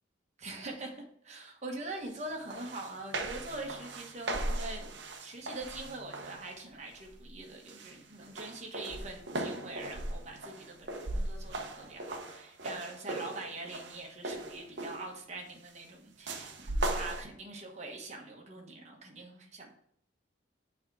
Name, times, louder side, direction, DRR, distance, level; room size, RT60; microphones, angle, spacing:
voice 1, 0.4-4.9 5.2-19.7, right 2 dB, 35° right, 1 dB, 1.2 m, -43 dB
sound 1, 2.2-2.3 2.5-6.5 7.0-7.3 7.7-15.1 16.3-17.2, right 2 dB, 65° right, 0.8 m, -38 dB
6.4 x 3.5 x 4.7 m, 0.70 s
head